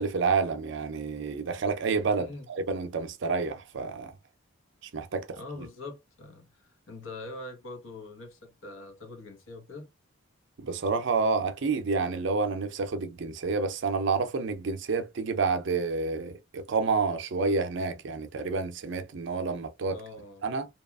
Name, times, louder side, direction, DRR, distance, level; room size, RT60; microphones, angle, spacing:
voice 1, 0.0-4.1 4.9-5.3 5.6-5.7 10.6-20.0 20.4-20.7, right 4 dB, 55° right, 0.4 m, -29 dB
voice 2, 5.1-9.9 19.9-20.4, left 2 dB, 65° left, 0.9 m, -43 dB
2.8 x 2.3 x 2.3 m
head